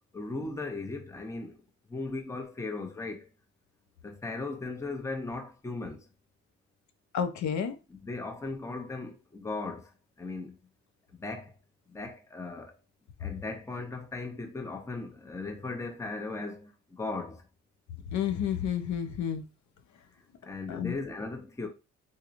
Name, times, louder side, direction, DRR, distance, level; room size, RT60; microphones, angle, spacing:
voice 1, 0.1-1.6 1.9-3.3 4.0-6.0 7.9-9.9 10.2-10.6 11.1-11.5 11.9-12.7 13.2-17.4 20.4-21.7, left 3 dB, 10° left, 0.7 m, -37 dB
voice 2, 7.1-7.8 18.1-19.4 20.7-20.9, left 8 dB, 70° left, 0.7 m, -30 dB
3.9 x 2.9 x 2.5 m
cardioid pair, 90°, 30 cm